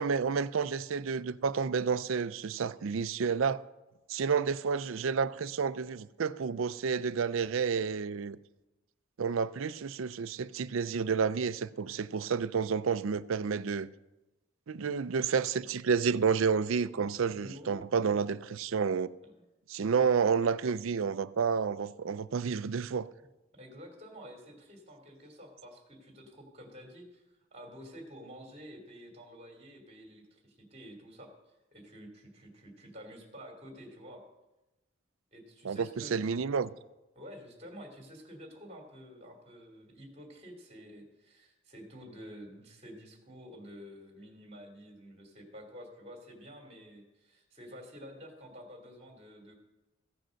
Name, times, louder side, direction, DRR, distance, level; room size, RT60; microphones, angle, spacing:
voice 1, 0.0-3.6 4.1-8.4 9.2-13.9 14.7-19.1 19.7-23.1 35.6-36.7, right 6 dB, 70° right, 0.5 m, -30 dB
voice 2, 17.0-18.1 19.2-19.4 23.6-34.2 35.3-36.3 37.1-49.6, equal, 30° right, 2.6 m, -50 dB
15.0 x 7.7 x 6.3 m
head